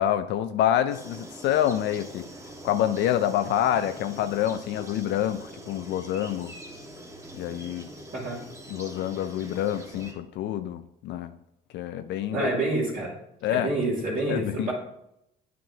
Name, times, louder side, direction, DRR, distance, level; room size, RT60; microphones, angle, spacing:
voice 1, 0.0-2.3 2.6-6.5 7.3-7.9 8.7-11.3 11.7-12.5 13.4-13.7 14.3-14.7, left 11 dB, 70° left, 9 dB, 0.5 m, -27 dB
sound 1, 0.9-10.1, right 1 dB, 15° right, 1.6 m, -44 dB
voice 2, 12.3-13.1 13.5-14.7, right 2 dB, 45° right, -8 dB, 2.6 m, -28 dB
9.0 x 5.9 x 2.8 m, 0.79 s
supercardioid pair, 80°, 19 cm